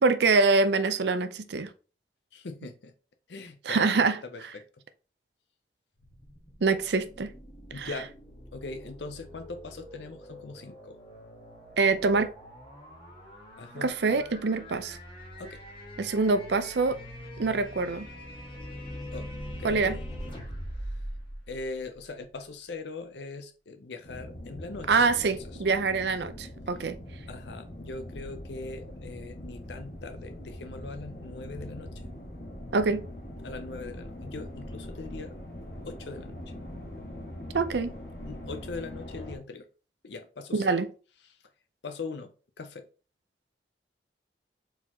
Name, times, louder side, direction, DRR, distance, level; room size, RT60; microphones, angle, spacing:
voice 1, 0.0-1.7 3.7-4.2 6.6-7.3 7.8-7.9 11.8-12.3 13.8-15.0 16.0-17.0 17.4-18.1 19.6-20.0 24.9-27.0 32.7-33.0 37.5-38.0 40.5-40.9, right 4 dB, 75° right, 0.5 m, -25 dB
voice 2, 2.3-2.9 3.3-4.6 7.7-8.1 8.5-11.0 13.6-14.0 15.4-15.6 19.1-19.3 19.6-20.0 21.5-25.4 27.3-31.9 33.4-35.3 35.8-36.4 38.3-39.7 40.0-40.8 41.8-42.9, left 3 dB, 80° left, 0.6 m, -41 dB
sound 1, 6.0-22.2, equal, 30° left, 1.4 m, -43 dB
sound 2, 24.0-39.4, left 1 dB, 60° left, 1.6 m, -42 dB
4.7 x 3.9 x 2.9 m
head